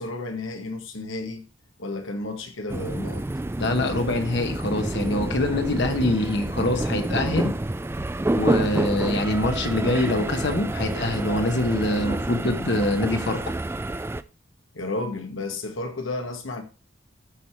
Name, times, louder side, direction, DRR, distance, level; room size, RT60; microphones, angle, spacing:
voice 1, 0.0-1.4 1.8-3.3 14.7-16.6, left 2 dB, 90° left, 1.8 m, -32 dB
sound 1, 2.7-14.2, right 1 dB, 10° right, 0.4 m, -28 dB
voice 2, 3.6-7.5 8.3-13.5, left 1 dB, 60° left, 1.3 m, -24 dB
13.0 x 5.1 x 4.6 m
head